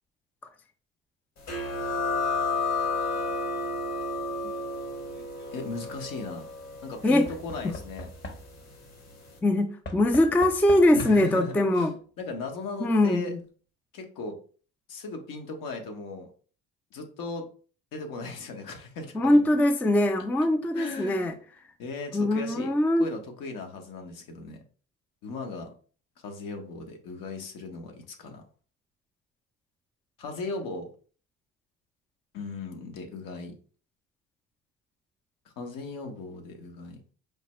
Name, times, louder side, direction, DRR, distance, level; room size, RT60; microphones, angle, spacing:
sound 1, 1.5-8.7, left 3 dB, 50° left, 1.3 m, -32 dB
Knock / Wood, 5.0-5.5 7.3-8.8 9.8-11.4 12.5-12.6 12.8-12.9, left 1 dB, 35° left, 0.9 m, -42 dB
voice 1, 5.5-6.5 6.8-8.1 10.9-11.9 12.2-13.3 13.9-14.4 14.9-16.3 16.9-17.5 17.9-19.5 20.7-21.3 21.8-22.7 23.0-24.6 25.2-25.7 26.2-28.4 30.2-30.9 32.3-33.5 35.4-37.0, left 3 dB, 70° left, 4 dB, 1.0 m, -37 dB
voice 2, 9.4-11.9 12.8-13.4 19.1-21.3 22.1-23.1, left 1 dB, 5° left, 8 dB, 0.3 m, -22 dB
4.9 x 2.2 x 3.0 m, 0.40 s
supercardioid pair, 80°, 33 cm